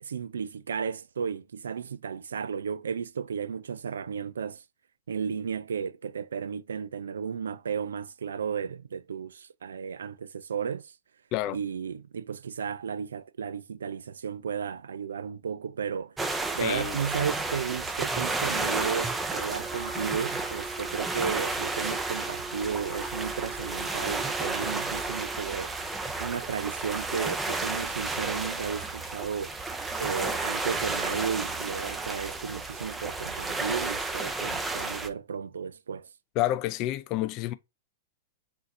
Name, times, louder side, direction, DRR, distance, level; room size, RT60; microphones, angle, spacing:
voice 1, 0.0-4.6 5.1-10.9 11.5-16.2 16.5-25.7 26.2-29.5 30.0-36.1, right 6 dB, 80° right, 0.3 m, -34 dB
sound 1, 16.2-35.1, right 3 dB, 10° right, 0.6 m, -32 dB
voice 2, 16.6-17.0 36.4-37.5, left 14 dB, 40° left, 0.4 m, -29 dB
Wind instrument woodwind instrument, 19.4-25.6, right 3 dB, 60° right, 1.1 m, -43 dB
3.9 x 2.7 x 4.1 m
hypercardioid pair, 110°, 0 cm